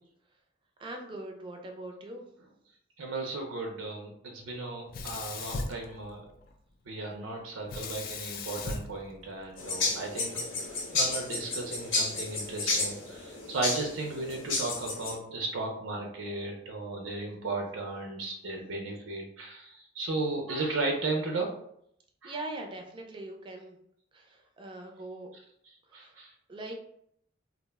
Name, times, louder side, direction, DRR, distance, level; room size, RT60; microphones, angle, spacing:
voice 1, 0.8-2.2 22.2-23.8 24.1-25.3 26.0-26.1 26.5-26.7, right 2 dB, 25° right, 2 dB, 0.4 m, -41 dB
voice 2, 3.0-6.3 6.9-10.5 10.9-21.6 22.2-22.3 25.7-26.3, right 3 dB, 90° right, 1 dB, 0.5 m, -35 dB
Sink (filling or washing), 4.9-6.5 7.7-9.9, left 3 dB, 50° left, 0.3 m, -38 dB
sound 1, 9.6-15.1, left 3 dB, 85° left, 0.7 m, -32 dB
2.4 x 2.0 x 3.4 m, 0.71 s
head